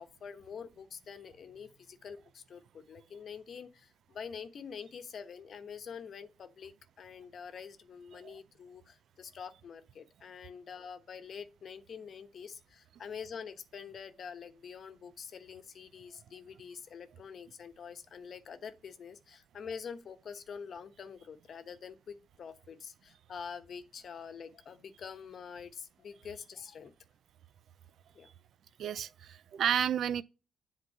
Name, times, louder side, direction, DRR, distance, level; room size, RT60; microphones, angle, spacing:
voice 1, 0.0-26.9 28.1-28.3, left 6 dB, 55° left, 1.0 m, -46 dB
voice 2, 28.8-30.2, right 9 dB, 65° right, 0.5 m, -31 dB
8.0 x 3.8 x 5.8 m
cardioid pair, 90°, 0 cm